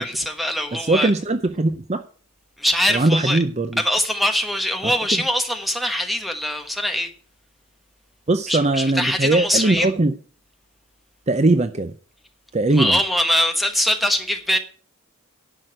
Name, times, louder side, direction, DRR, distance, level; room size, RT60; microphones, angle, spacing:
voice 1, 0.0-1.1 2.6-3.4 3.8-7.1 8.5-9.9 12.7-14.6, equal, ahead, 1.2 m, -22 dB
voice 2, 0.7-2.0 2.9-3.8 4.8-4.9 8.3-10.1 11.3-11.9 12.5-13.0, right 2 dB, 30° right, 0.6 m, -20 dB
11.0 x 6.4 x 7.6 m
head